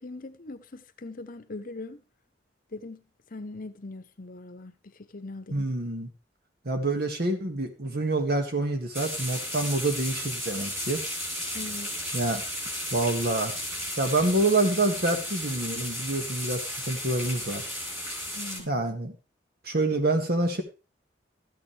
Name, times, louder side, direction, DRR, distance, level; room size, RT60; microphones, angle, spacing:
voice 1, 0.0-2.0 2.7-3.0 3.3-5.7 11.5-11.9 18.3-18.9, left 2 dB, 50° left, 0.9 m, -41 dB
voice 2, 5.5-6.1 6.7-11.0 12.1-12.4 12.9-13.5 14.0-17.7 18.7-19.1 19.7-20.6, right 2 dB, 60° right, 1.8 m, -27 dB
sound 1, 8.9-18.6, equal, 15° right, 4.6 m, -34 dB
13.0 x 8.6 x 3.3 m
head